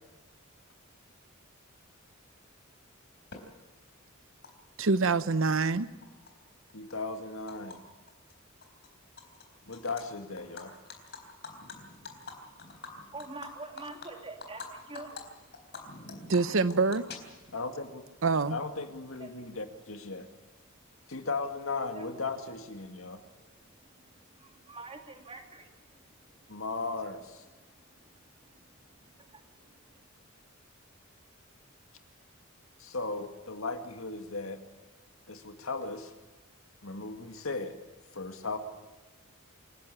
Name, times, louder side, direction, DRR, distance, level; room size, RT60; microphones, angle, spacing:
Animal, 3.3-3.4 4.4-4.5 4.8-5.7 6.0-7.8 8.1-8.3 8.6-9.4 9.7-10.0 10.4-14.7 14.9-15.2 15.5-17.6, left 4 dB, 55° left, 4.0 m, -45 dB
voice 1, 4.8-5.9 16.2-17.1 18.2-18.6, right 4 dB, 65° right, 0.8 m, -26 dB
voice 2, 6.7-7.8 9.7-10.7 17.5-18.0 18.5-20.3 21.1-23.2 26.5-27.4 32.8-34.6 35.3-36.1 36.8-37.7 38.1-38.6, left 3 dB, 75° left, 2.1 m, -36 dB
voice 3, 12.8-15.2 19.2-19.5 20.6-20.7 21.9-22.1 23.5-26.6 27.6-28.1 28.4-29.6 29.9-30.0, right 3 dB, 25° right, 2.8 m, -48 dB
27.5 x 11.5 x 8.5 m
head